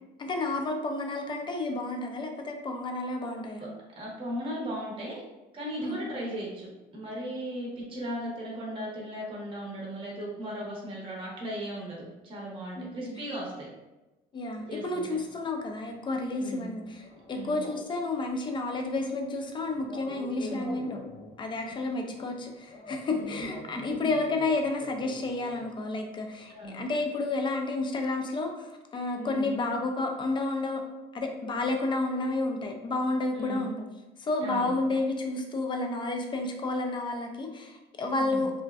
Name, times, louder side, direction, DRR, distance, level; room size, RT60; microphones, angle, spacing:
voice 1, 0.2-3.7 5.8-6.1 12.8-13.2 14.3-21.0 21.4-28.7 28.9-30.8 31.1-33.8 34.2-38.5, left 2 dB, 30° left, 3 dB, 0.4 m, -31 dB
voice 2, 4.0-5.2 5.5-13.7 14.7-15.1 16.4-16.7 17.3-17.6 20.4-20.7 23.1-23.5 26.5-26.8 29.2-29.6 33.4-33.7 34.4-34.7 38.2-38.4, equal, 30° right, -3 dB, 0.7 m, -37 dB
sound 1, 14.6-16.2 16.4-18.1 18.4-25.8 26.4-26.5 26.7-27.0, left 2 dB, 50° left, 0.9 m, -45 dB
2.5 x 2.1 x 2.3 m, 1.1 s
cardioid pair, 110°, 17 cm